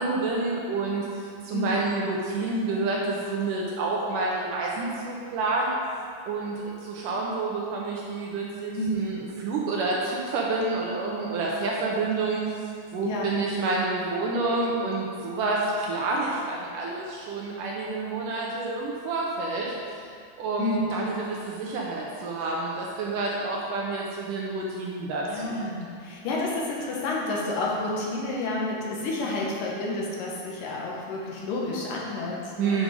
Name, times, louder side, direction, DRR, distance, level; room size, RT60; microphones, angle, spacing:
voice 1, 0.0-5.7 6.3-12.5 12.9-19.7 20.4-25.6 32.6-32.8, right 3 dB, 75° right, -3 dB, 2.1 m, -28 dB
voice 2, 1.5-1.9 8.8-9.3 13.0-13.3 20.6-21.0 25.3-32.8, left 2 dB, 70° left, -3 dB, 2.4 m, -30 dB
9.0 x 5.0 x 5.0 m, 2.2 s
omnidirectional pair, 4.3 m